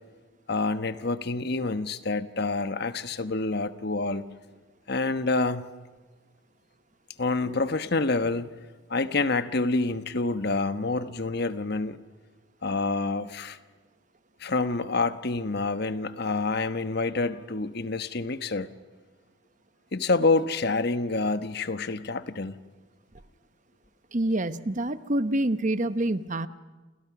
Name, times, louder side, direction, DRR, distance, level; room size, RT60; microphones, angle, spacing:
voice 1, 0.5-4.2 4.9-5.6 7.2-8.5 8.9-12.0 12.6-13.6 14.4-18.7 19.9-22.6, left 3 dB, 50° left, 11 dB, 1.1 m, -27 dB
voice 2, 24.1-26.5, right 1 dB, 40° right, 13 dB, 1.0 m, -26 dB
29.5 x 29.0 x 6.0 m, 1.3 s
head